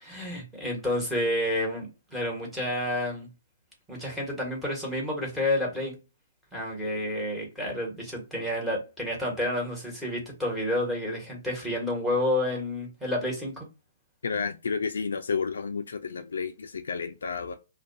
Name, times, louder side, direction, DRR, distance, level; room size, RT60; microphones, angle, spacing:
voice 1, 0.1-3.3 3.9-6.0 6.5-13.7, left 1 dB, 5° right, 1.2 m, -30 dB
voice 2, 14.2-17.5, left 5 dB, 80° left, 0.3 m, -31 dB
2.3 x 2.2 x 2.5 m
hypercardioid pair, 140°, 0 cm